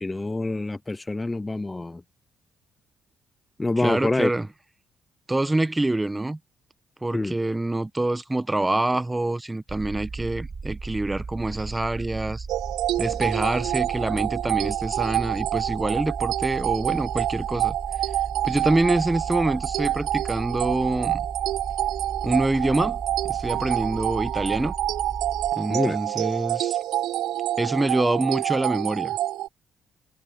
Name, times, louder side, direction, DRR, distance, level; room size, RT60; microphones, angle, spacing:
voice 1, 0.0-2.0 3.6-4.3 7.1-7.3 25.7-26.0, left 2 dB, 20° left, 0.3 m, -26 dB
voice 2, 3.8-4.5 5.3-6.4 7.0-12.5 13.0-17.8 18.4-21.2 22.2-24.7 25.5-26.8 27.6-29.2, right 2 dB, 15° right, 1.1 m, -26 dB
sound 1, 9.7-25.5, right 4 dB, 35° right, 2.6 m, -36 dB
sound 2, 12.5-29.5, right 14 dB, 85° right, 0.4 m, -27 dB
supercardioid pair, 75°, 0 cm